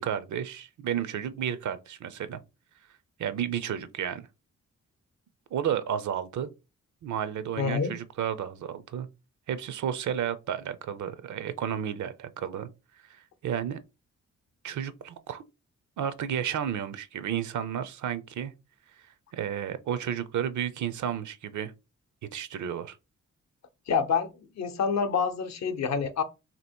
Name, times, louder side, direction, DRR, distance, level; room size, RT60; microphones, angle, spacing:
voice 1, 0.0-2.4 3.2-4.3 5.5-6.5 7.0-9.1 9.5-12.7 13.1-13.8 14.6-15.4 16.0-18.5 19.3-21.7 22.3-23.0, right 9 dB, 75° right, 0.6 m, -32 dB
voice 2, 7.6-7.9 23.9-24.3 24.6-26.2, left 6 dB, 65° left, 0.7 m, -27 dB
2.9 x 2.9 x 4.3 m
cardioid pair, 90°, 30 cm